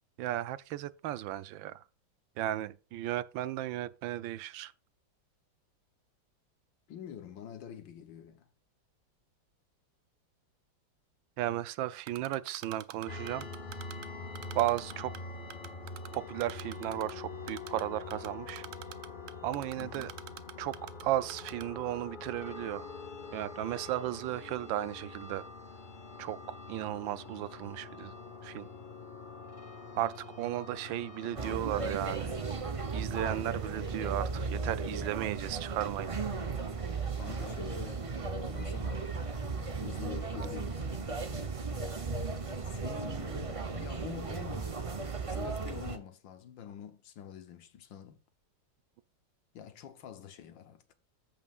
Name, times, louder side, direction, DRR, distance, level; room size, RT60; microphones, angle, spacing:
voice 1, 0.2-1.8 2.4-4.7 11.4-13.5 14.5-15.2 16.1-18.7 19.4-20.1 20.6-22.9 23.3-25.5 26.2-28.1 28.4-28.7 29.9-32.3 32.9-36.1, right 13 dB, 90° right, 1.4 m, -35 dB
voice 2, 6.9-8.5 19.8-20.1 31.3-31.7 37.1-39.1 39.8-41.1 42.6-44.8 45.3-48.2 49.5-50.9, left 9 dB, 80° left, 1.7 m, -47 dB
Typing, 12.1-14.1 14.4-15.2 15.5-17.1 17.5-17.8 18.1-21.0 21.3-21.6, right 13 dB, 70° right, 0.9 m, -44 dB
sound 1, 13.1-31.5, left 4 dB, 35° left, 1.0 m, -45 dB
sound 2, 31.4-46.0, right 4 dB, 35° right, 0.5 m, -36 dB
14.5 x 5.5 x 2.4 m
omnidirectional pair, 2.0 m